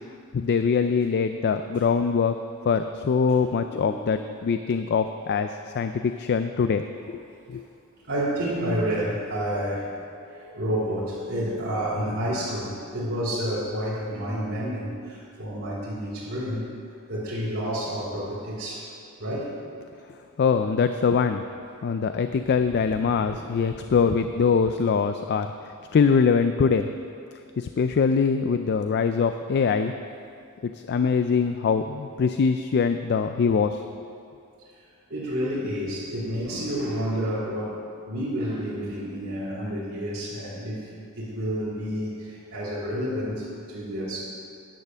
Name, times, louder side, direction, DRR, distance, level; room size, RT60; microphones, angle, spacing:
voice 1, 0.3-2.4 2.6-6.9 7.5-7.6 20.4-21.4 21.8-26.9 27.6-29.9 30.6-34.1, left 5 dB, 50° left, 8 dB, 0.3 m, -23 dB
voice 2, 3.7-4.1 7.0-7.1 8.0-9.9 10.2-16.7 17.1-18.9 19.2-19.6 22.3-22.4 22.9-23.4 23.7-24.1 27.6-27.7 35.1-44.2, equal, 60° right, -8 dB, 2.6 m, -30 dB
10.0 x 6.6 x 7.2 m, 2.4 s
head